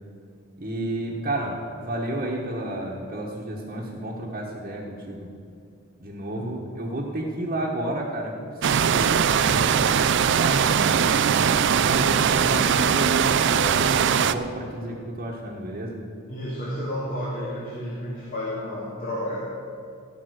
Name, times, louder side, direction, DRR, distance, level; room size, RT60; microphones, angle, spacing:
voice 1, 0.6-5.3 6.0-8.4 8.6-11.0 11.8-16.0, right 1 dB, 40° right, -4 dB, 1.3 m, -31 dB
sound 1, 8.6-14.3, right 7 dB, 60° right, 0.4 m, -21 dB
voice 2, 16.3-19.4, equal, 45° left, -7 dB, 2.6 m, -31 dB
16.5 x 6.0 x 6.4 m, 2.5 s
head